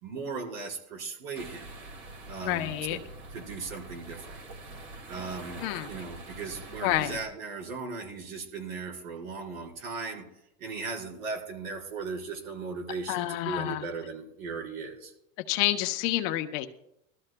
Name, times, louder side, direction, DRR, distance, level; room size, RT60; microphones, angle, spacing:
voice 1, 0.0-1.7 2.3-3.0 3.3-4.4 5.1-10.2 10.6-15.1, right 4 dB, 75° right, -1 dB, 4.7 m, -37 dB
sound 1, 1.3-7.3, right 2 dB, 45° right, 2.3 m, -45 dB
voice 2, 2.4-3.0 5.6-5.9 6.8-7.2 13.1-13.8 15.5-16.7, left 14 dB, 45° left, 7 dB, 0.8 m, -28 dB
21.5 x 13.0 x 2.2 m, 0.80 s
supercardioid pair, 145°, 41 cm